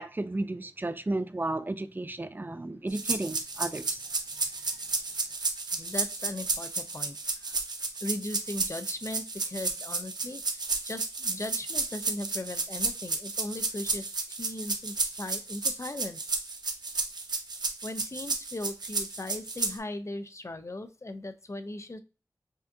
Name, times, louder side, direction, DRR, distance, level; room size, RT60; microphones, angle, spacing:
voice 1, 0.0-4.0, right 2 dB, 30° right, 0.4 m, -33 dB
sound 1, 2.9-19.8, right 3 dB, 80° right, 0.7 m, -32 dB
voice 2, 5.7-7.6 8.0-16.3 17.8-22.0, left 2 dB, 45° left, 0.6 m, -38 dB
5.5 x 2.4 x 2.7 m
cardioid pair, 40°, 7 cm